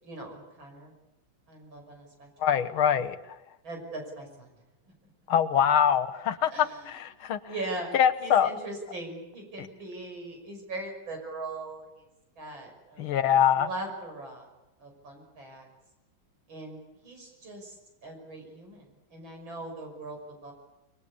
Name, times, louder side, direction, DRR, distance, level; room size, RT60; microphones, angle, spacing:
voice 1, 0.0-0.9 1.5-3.0 3.6-4.6 4.8-4.9 6.5-12.1 12.4-13.1 13.5-14.5 14.8-15.7 16.5-17.7 18.0-20.5, right 2 dB, 70° right, 2 dB, 6.9 m, -40 dB
voice 2, 2.4-3.2 5.3-7.4 7.9-8.5 9.6-9.7 13.0-13.7, left 9 dB, 85° left, 12 dB, 2.0 m, -24 dB
24.5 x 23.0 x 8.5 m, 0.95 s
omnidirectional pair, 2.2 m